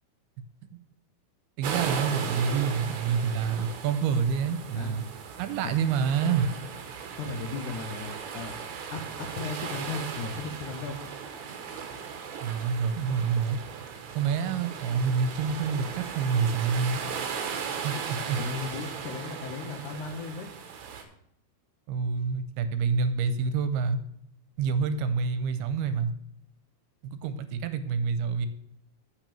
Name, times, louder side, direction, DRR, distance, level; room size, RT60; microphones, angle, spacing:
sound 1, 1.6-21.0, right 6 dB, 65° right, 1.9 m, -37 dB
voice 1, 1.6-5.1 5.4-6.5 12.4-13.6 14.2-17.1 17.8-18.4 21.9-24.0 24.6-26.1 27.0-28.5, right 6 dB, 85° right, 11 dB, 2.5 m, -27 dB
voice 2, 7.2-8.6 8.9-11.1 18.4-20.5, left 4 dB, 85° left, 5 dB, 1.7 m, -36 dB
8.2 x 6.1 x 6.9 m, 0.74 s
omnidirectional pair, 4.7 m